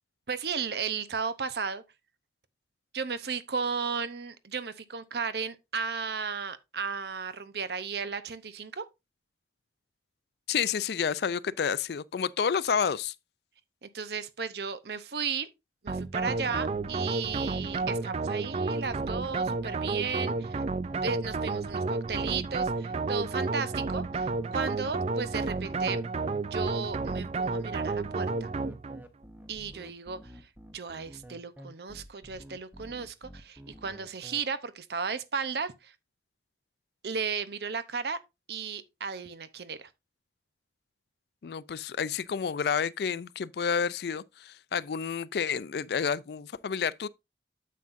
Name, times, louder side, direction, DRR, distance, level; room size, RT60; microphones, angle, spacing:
voice 1, 0.3-1.8 2.9-8.8 13.8-15.5 15.8-20.6 21.0-26.0 26.5-28.5 29.5-35.9 37.0-38.2 38.5-39.9, right 5 dB, 65° right, 0.7 m, -35 dB
voice 2, 10.5-13.1 41.4-47.1, left 6 dB, 60° left, 0.4 m, -30 dB
sound 1, 15.9-34.4, equal, 10° right, 0.8 m, -49 dB
sound 2, 15.9-29.1, right 3 dB, 35° right, 0.4 m, -31 dB
9.2 x 7.5 x 2.6 m
head